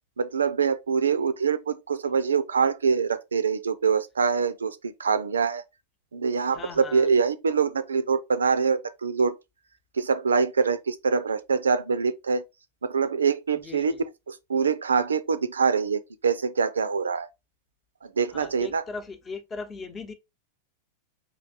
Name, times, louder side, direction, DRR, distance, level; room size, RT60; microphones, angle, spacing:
voice 1, 0.2-5.6 6.1-9.4 9.9-12.4 12.8-14.0 14.3-17.3 18.0-18.8, right 5 dB, 70° right, 0.5 m, -24 dB
voice 2, 6.5-7.1 13.6-14.0 18.3-20.1, left 4 dB, 20° left, 0.9 m, -38 dB
5.0 x 3.3 x 2.8 m
figure-of-eight pair, 90°, 0 cm